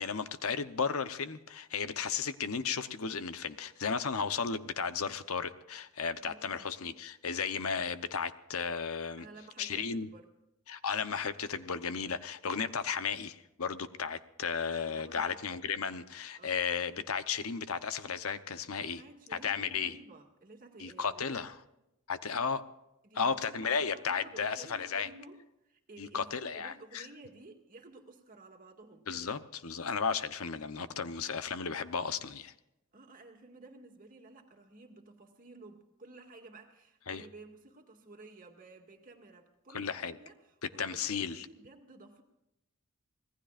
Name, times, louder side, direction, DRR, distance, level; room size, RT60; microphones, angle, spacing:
voice 1, 0.0-9.3 9.6-10.1 10.7-19.0 19.3-19.9 20.8-21.6 22.1-22.6 23.1-25.1 26.0-27.1 29.1-32.5 37.1-37.2 39.7-40.2 40.6-41.5, left 6 dB, 75° left, 12 dB, 0.9 m, -34 dB
voice 2, 6.2-6.6 9.2-10.3 14.9-15.6 16.4-16.6 19.0-21.5 23.0-29.2 32.9-42.2, right 2 dB, 40° right, 3 dB, 2.1 m, -53 dB
25.5 x 18.5 x 2.5 m, 0.90 s
head